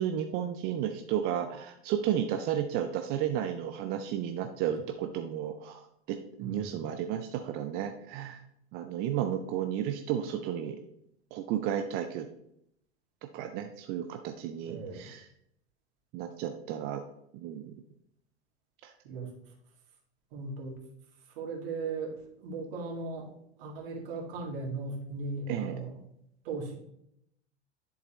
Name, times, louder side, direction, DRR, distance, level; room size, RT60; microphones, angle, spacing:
voice 1, 0.0-5.8 6.1-8.4 8.7-10.8 11.3-12.3 13.3-15.3 16.1-17.0 17.3-17.7 18.8-18.9 25.5-25.8, right 10 dB, 30° right, 6 dB, 0.5 m, -33 dB
voice 2, 6.4-6.8 14.7-15.1 19.0-19.3 20.3-20.8 21.4-23.3 23.6-26.0 26.4-26.8, right 3 dB, 55° right, -1 dB, 2.1 m, -37 dB
10.5 x 3.9 x 3.0 m, 0.75 s
figure-of-eight pair, 95°, 35 cm